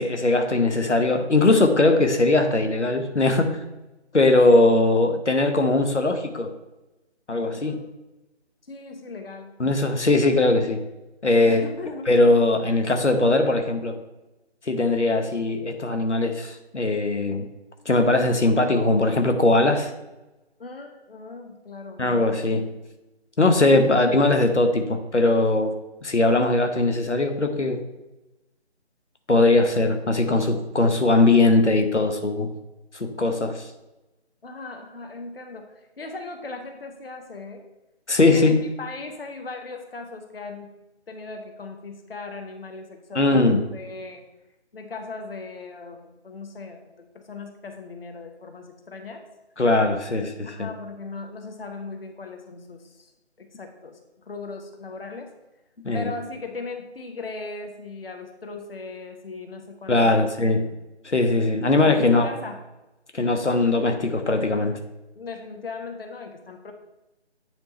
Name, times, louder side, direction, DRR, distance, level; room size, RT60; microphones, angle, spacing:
voice 1, 0.0-3.6 4.1-6.5 7.3-7.7 9.6-10.8 11.2-11.6 12.1-14.0 14.7-17.5 17.9-19.9 22.0-22.7 23.4-25.7 26.0-27.8 29.3-32.5 32.9-33.7 38.1-38.6 43.1-43.6 49.6-50.7 55.8-56.1 59.9-60.6 61.0-62.3 63.1-64.8, left 2 dB, 90° left, 6 dB, 1.0 m, -20 dB
voice 2, 7.5-7.9 8.7-9.5 11.4-12.1 20.6-22.0 34.4-37.6 38.2-40.7 41.1-44.2 44.7-49.2 50.4-53.1 53.4-55.3 55.9-60.8 61.7-62.6 65.2-66.7, left 3 dB, 55° left, 5 dB, 0.9 m, -38 dB
9.0 x 3.5 x 4.3 m, 0.99 s
figure-of-eight pair, 155°, 34 cm